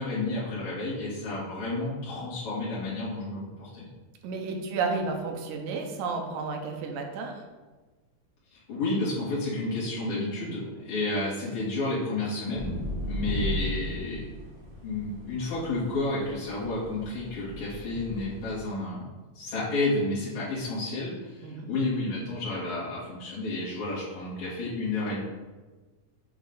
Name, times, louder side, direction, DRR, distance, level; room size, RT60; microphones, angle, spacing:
voice 1, 0.0-3.9 8.5-12.8 13.0-14.3 14.8-19.1 19.4-25.2, left 2 dB, 65° left, -10 dB, 3.5 m, -31 dB
voice 2, 4.2-7.4 21.4-21.7, right 4 dB, 75° right, 3 dB, 2.0 m, -32 dB
sound 1, 12.5-18.6, equal, 55° right, 1.9 m, -36 dB
8.1 x 3.2 x 4.0 m, 1.3 s
omnidirectional pair, 3.7 m